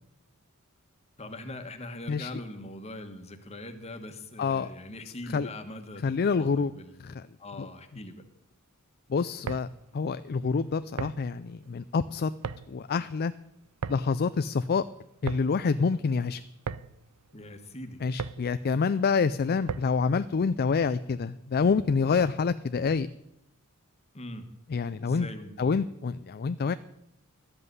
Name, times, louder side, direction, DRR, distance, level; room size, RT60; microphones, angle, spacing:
voice 1, 1.2-8.3 17.3-18.0 24.1-24.5 25.0-25.8, left 1 dB, 30° left, 7 dB, 1.4 m, -42 dB
voice 2, 4.4-4.7 5.3-5.5 6.0-6.7 7.0-7.2 7.6-7.7 9.1-9.7 9.9-12.3 12.7-13.3 13.9-14.8 15.2-16.4 18.0-23.1 24.7-25.3 25.6-26.7, left 5 dB, 45° left, 13 dB, 0.4 m, -27 dB
sound 1, 9.2-20.1, right 5 dB, 90° right, 0.5 m, -40 dB
13.0 x 7.7 x 9.5 m, 0.83 s
head